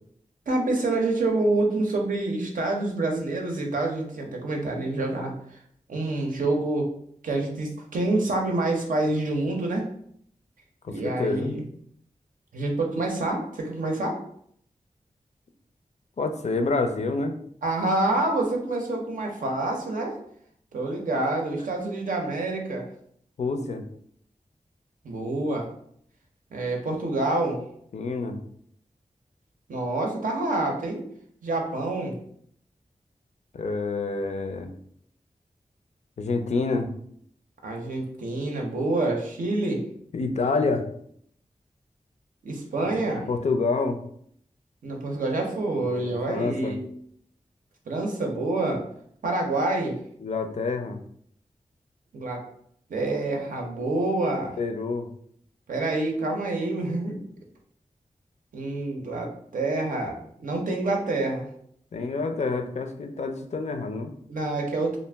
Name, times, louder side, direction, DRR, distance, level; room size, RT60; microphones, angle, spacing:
voice 1, 0.5-5.6 5.9-6.9 7.2-9.9 10.9-11.6 12.5-14.2 17.6-20.2 20.7-22.9 25.0-25.7 26.5-27.6 29.7-31.0 31.4-32.2 37.6-39.8 42.4-43.3 44.8-46.9 47.9-48.8 49.2-50.0 52.1-52.4 52.9-54.5 55.7-57.3 58.5-61.5 64.3-65.0, right 2 dB, 85° right, 1 dB, 0.6 m, -27 dB
voice 2, 10.8-11.5 16.2-17.4 23.4-23.9 27.9-28.4 33.5-34.7 36.2-36.9 40.1-40.9 42.8-43.0 43.3-44.0 45.8-46.7 50.2-51.0 54.6-55.1 61.9-64.1, left 3 dB, 55° left, 6 dB, 0.4 m, -27 dB
2.4 x 2.0 x 3.3 m, 0.65 s
cardioid pair, 55°, 14 cm